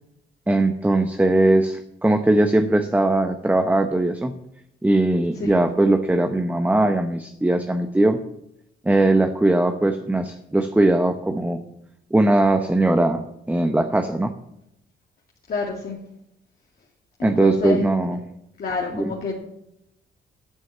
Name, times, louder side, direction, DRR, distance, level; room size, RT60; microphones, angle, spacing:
voice 1, 0.5-4.3 4.8-8.2 8.8-11.6 12.1-13.2 13.5-14.3 17.2-18.2 18.9-19.1, right 2 dB, 10° right, 7 dB, 0.9 m, -20 dB
voice 2, 15.5-16.0 17.2-17.8 18.6-19.4, left 4 dB, 50° left, -2 dB, 2.3 m, -28 dB
11.5 x 6.3 x 7.4 m, 0.81 s
cardioid pair, 90°, 20 cm